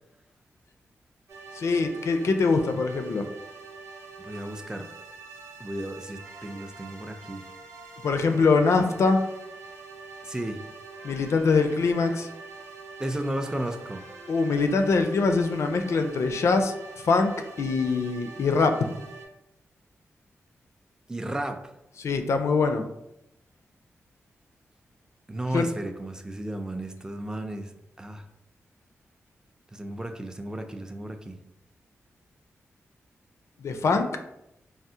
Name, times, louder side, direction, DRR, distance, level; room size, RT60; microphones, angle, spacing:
sound 1, 1.3-19.3, right 4 dB, 65° right, 0.6 m, -44 dB
voice 1, 1.5-3.3 8.0-9.2 11.0-12.3 14.3-16.7 17.0-17.3 17.6-18.7 22.0-22.8 25.5-25.7 33.6-34.1, left 4 dB, 65° left, 6 dB, 0.4 m, -23 dB
voice 2, 4.2-4.9 5.6-7.5 10.2-10.6 13.0-14.1 21.1-21.6 25.3-28.2 29.7-31.4, right 1 dB, 15° right, 6 dB, 0.4 m, -34 dB
3.4 x 2.0 x 2.7 m, 0.84 s
cardioid pair, 60°, 5 cm